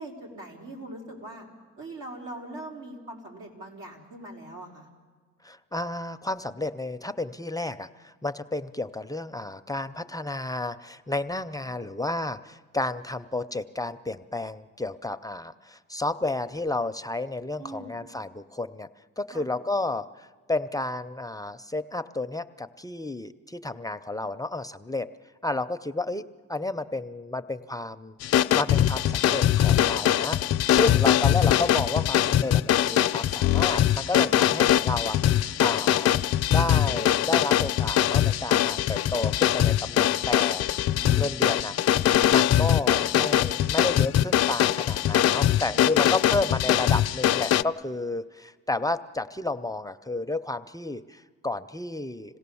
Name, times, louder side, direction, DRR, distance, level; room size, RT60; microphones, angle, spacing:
voice 1, 0.0-1.5 1.8-4.9 17.6-17.9 19.3-19.5 34.2-34.5 41.0-41.3 45.7-46.6, right 1 dB, 85° right, -1 dB, 4.3 m, -42 dB
voice 2, 5.4-18.9 19.2-25.1 25.4-26.2 26.5-28.2 28.5-30.4 30.7-36.1 36.5-40.7 41.2-41.7 42.3-52.4, left 2 dB, 10° left, 10 dB, 0.5 m, -31 dB
sound 1, 28.2-47.6, left 12 dB, 55° left, 0.5 m, -22 dB
26.5 x 17.0 x 7.0 m, 1.5 s
cardioid pair, 90°, 30 cm